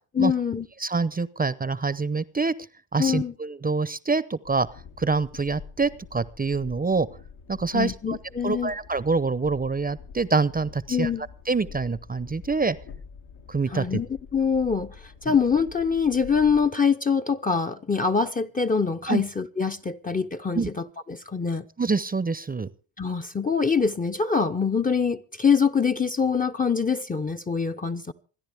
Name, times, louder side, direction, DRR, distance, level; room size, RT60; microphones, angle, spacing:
voice 1, 0.2-0.7 3.0-3.3 7.7-8.7 10.9-11.3 13.7-21.7 23.0-28.1, left 6 dB, 20° left, 0.7 m, -24 dB
voice 2, 0.8-2.5 2.9-4.7 5.0-7.1 7.5-8.2 8.4-11.1 11.5-12.8 13.5-14.0 19.1-19.2 20.5-20.7 21.8-22.7, right 4 dB, 20° right, 0.8 m, -25 dB
Train, 4.4-16.7, left 6 dB, 75° left, 1.8 m, -46 dB
27.0 x 10.0 x 3.5 m
supercardioid pair, 65°, 48 cm